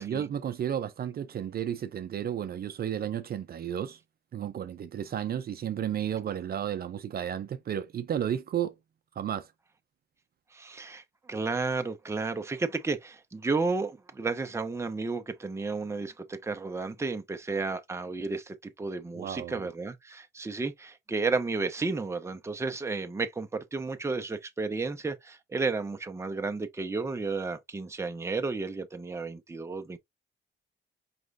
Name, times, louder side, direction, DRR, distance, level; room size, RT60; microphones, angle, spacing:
voice 1, 0.0-4.0 4.3-8.7 9.2-9.5 19.2-19.7, right 9 dB, 50° right, 0.6 m, -33 dB
voice 2, 10.5-30.0, right 3 dB, 15° right, 0.7 m, -32 dB
5.0 x 3.0 x 2.6 m
cardioid pair, 90°, 20 cm